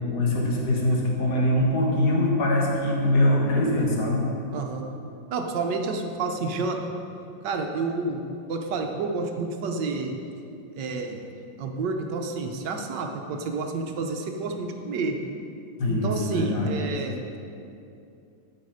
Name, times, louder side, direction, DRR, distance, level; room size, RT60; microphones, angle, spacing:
voice 1, 0.0-4.2 15.8-16.7, left 1 dB, 55° left, -2 dB, 2.0 m, -23 dB
voice 2, 4.5-4.9 5.3-6.8 7.4-8.2 8.5-10.2 10.8-11.2 11.6-15.2 15.9-17.4, right 3 dB, 70° right, 4 dB, 1.4 m, -29 dB
12.5 x 5.8 x 4.9 m, 2.6 s
omnidirectional pair, 2.1 m